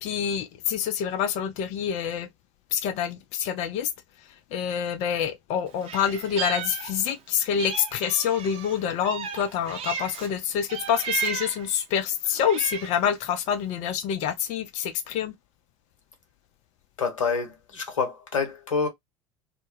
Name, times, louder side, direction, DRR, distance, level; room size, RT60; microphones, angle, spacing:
voice 1, 0.0-2.3 2.7-3.9 4.5-15.3, left 8 dB, 45° left, 0.5 m, -27 dB
Meow, 5.8-7.2 7.6-10.3 10.7-11.7 12.2-13.1, right 7 dB, 35° right, 0.7 m, -34 dB
voice 2, 17.0-18.9, left 5 dB, 75° left, 0.9 m, -27 dB
2.1 x 2.1 x 3.2 m
figure-of-eight pair, 75°, 17 cm